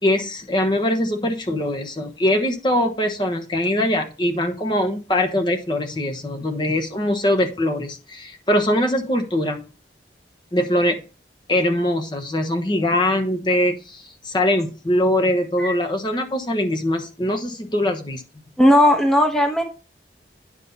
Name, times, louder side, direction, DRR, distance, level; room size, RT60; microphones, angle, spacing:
voice 1, 0.0-9.6 10.5-11.0 11.5-18.2, left 1 dB, 25° left, 4 dB, 1.1 m, -22 dB
voice 2, 18.6-19.6, equal, 5° left, 3 dB, 1.1 m, -16 dB
10.0 x 5.5 x 4.1 m, 0.33 s
head